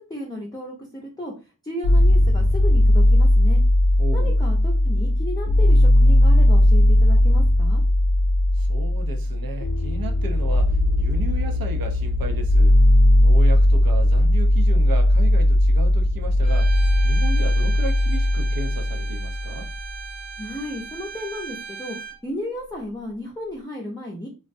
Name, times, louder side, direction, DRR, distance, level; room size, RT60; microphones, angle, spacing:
voice 1, 0.0-1.3 1.6-3.6 4.1-7.8 20.4-22.0 22.2-24.3, left 1 dB, 10° left, 0.6 m, -34 dB
sound 1, 1.8-19.8, left 1 dB, 60° left, 0.6 m, -17 dB
voice 2, 4.0-4.5 8.5-12.8 13.2-16.7 17.0-19.7, right 3 dB, 75° right, 0.6 m, -34 dB
Bowed string instrument, 16.4-22.2, right 5 dB, 25° right, 0.8 m, -37 dB
2.3 x 2.1 x 2.5 m
cardioid pair, 50°, 35 cm